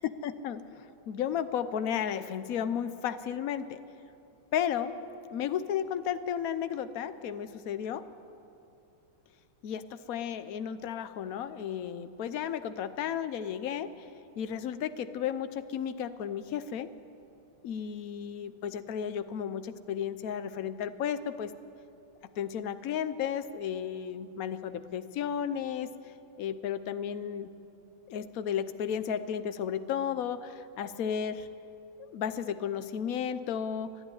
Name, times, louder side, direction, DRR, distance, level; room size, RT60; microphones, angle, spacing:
voice 1, 0.0-3.8 4.5-5.0 5.3-8.0 9.6-13.9 14.4-16.9 17.6-21.5 22.4-25.9 26.4-27.5 28.1-31.5 32.1-34.0, left 8 dB, 65° left, 12 dB, 0.8 m, -33 dB
25.5 x 11.0 x 9.9 m, 2.7 s
omnidirectional pair, 2.4 m